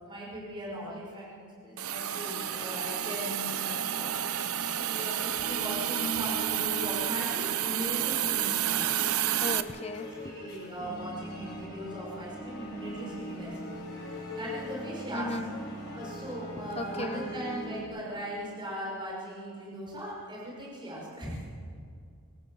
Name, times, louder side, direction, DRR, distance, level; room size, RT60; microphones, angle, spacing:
voice 1, 0.0-9.0 10.2-13.8 14.3-15.4 15.9-21.4, equal, 20° right, -4 dB, 5.5 m, -39 dB
Hiss, 1.8-9.6, right 11 dB, 70° right, 0.8 m, -30 dB
sound 1, 1.9-17.8, equal, 50° left, 5.3 m, -42 dB
voice 2, 9.4-10.3 15.1-15.5 16.8-17.3, left 2 dB, 25° left, 12 dB, 0.8 m, -36 dB
24.5 x 18.5 x 6.3 m, 2.3 s
head